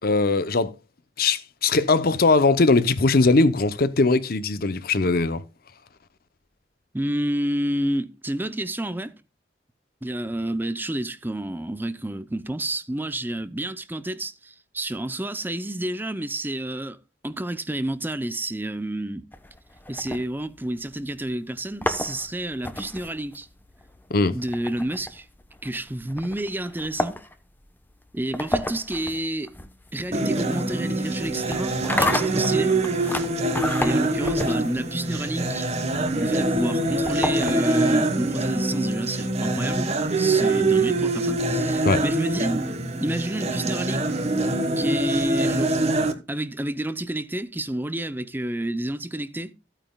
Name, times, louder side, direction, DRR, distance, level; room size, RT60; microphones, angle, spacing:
voice 1, 0.0-0.7 1.2-5.4 24.1-24.3 41.8-42.0, left 3 dB, 55° left, 0.7 m, -20 dB
voice 2, 6.9-9.1 10.0-17.0 17.2-19.3 19.9-23.5 24.3-25.3 25.6-27.2 28.1-29.6 29.9-32.8 33.8-35.7 36.2-42.7 43.0-44.1 44.8-45.8 46.3-49.5, right 1 dB, 10° right, 0.6 m, -29 dB
sound 1, 19.3-20.9 21.6-37.9, left 1 dB, 10° left, 0.9 m, -32 dB
sound 2, 30.1-46.1, right 2 dB, 40° right, 1.3 m, -24 dB
14.5 x 8.9 x 2.3 m
head